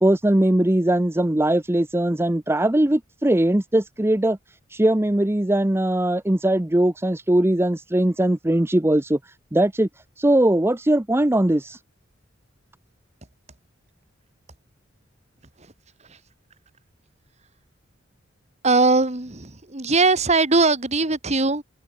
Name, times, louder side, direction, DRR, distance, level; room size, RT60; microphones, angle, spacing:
voice 1, 0.0-4.4 4.7-9.9 10.2-11.8, right 1 dB, 10° right, 0.7 m, -20 dB
voice 2, 18.6-21.6, right 3 dB, 35° right, 2.2 m, -20 dB
head